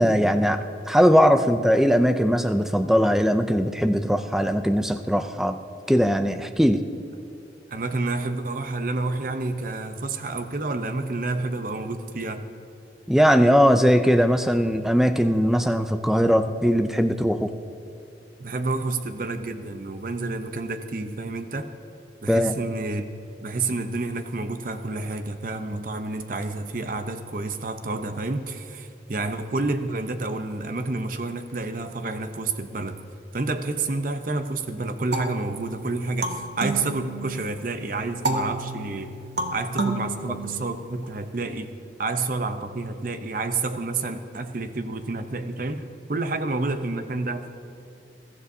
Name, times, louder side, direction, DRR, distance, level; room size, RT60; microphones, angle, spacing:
voice 1, 0.0-5.6 5.9-6.8 13.1-17.5 22.3-22.6 40.3-40.4, equal, ahead, 9 dB, 0.4 m, -20 dB
voice 2, 7.7-12.5 18.4-21.7 22.2-23.1 23.4-33.0 33.3-39.1 39.5-41.7 42.0-47.5, right 3 dB, 45° right, 9 dB, 0.7 m, -29 dB
sound 1, 35.1-37.6 38.2-41.0, right 2 dB, 65° right, 1.0 m, -31 dB
21.5 x 13.5 x 2.7 m, 2.6 s
head